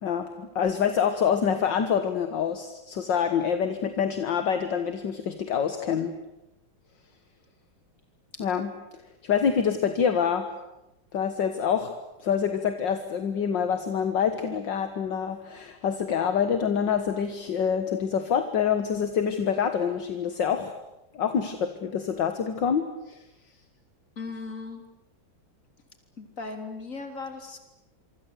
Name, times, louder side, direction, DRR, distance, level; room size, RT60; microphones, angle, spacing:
voice 1, 0.0-6.1 8.3-8.8 9.2-10.5 11.1-11.9 12.2-20.8 21.1-23.2, left 7 dB, 65° left, 9 dB, 2.1 m, -26 dB
voice 2, 24.2-24.8 26.2-27.6, left 3 dB, 40° left, 6 dB, 3.9 m, -37 dB
26.5 x 24.5 x 8.4 m, 0.93 s
omnidirectional pair, 2.2 m